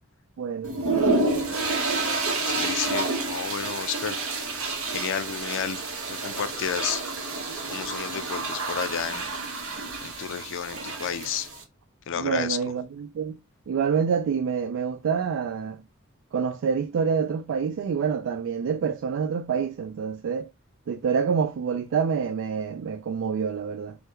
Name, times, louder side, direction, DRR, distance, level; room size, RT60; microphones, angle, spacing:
voice 1, 0.4-0.8 12.2-13.4 13.7-15.8 16.3-20.5 20.9-23.9, right 6 dB, 60° right, 0.3 m, -27 dB
sound 1, 0.6-11.6, right 3 dB, 80° right, 1.2 m, -29 dB
voice 2, 2.5-4.2 4.9-5.8 6.1-7.0 7.7-9.3 10.0-11.5 12.1-12.6, left 8 dB, 60° left, 0.4 m, -31 dB
3.3 x 2.2 x 2.9 m
head